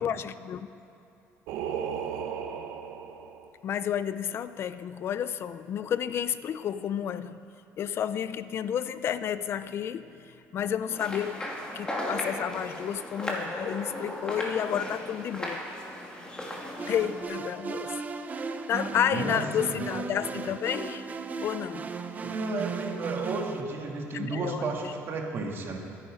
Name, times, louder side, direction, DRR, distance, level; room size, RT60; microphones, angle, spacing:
voice 1, 0.0-0.7 3.6-7.4 7.8-11.4 11.7-15.6 16.9-17.9 18.7-21.1 21.4-21.9 24.1-24.9, left 9 dB, 50° left, 14 dB, 0.4 m, -31 dB
Singing, 1.5-3.5, right 7 dB, 80° right, 1.1 m, -35 dB
sound 1, 10.9-17.2, left 1 dB, 15° left, 2.6 m, -36 dB
sound 2, 16.8-23.6, right 5 dB, 30° right, 0.8 m, -36 dB
voice 2, 18.9-19.8 22.1-25.8, right 3 dB, 45° right, 1 dB, 2.2 m, -33 dB
22.0 x 9.9 x 5.3 m, 2.8 s
cardioid pair, 125°, 5 cm